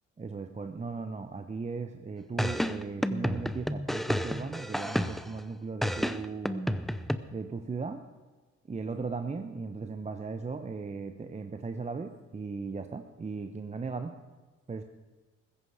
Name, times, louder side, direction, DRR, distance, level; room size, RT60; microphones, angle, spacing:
voice 1, 0.2-6.6 7.3-8.0 8.7-14.1 14.7-14.8, right 4 dB, 25° right, 7 dB, 0.8 m, -37 dB
sound 1, 2.4-5.4 5.8-7.2, equal, ahead, 0.7 m, -30 dB
15.5 x 14.5 x 4.9 m, 1.3 s
cardioid pair, 90°, 30 cm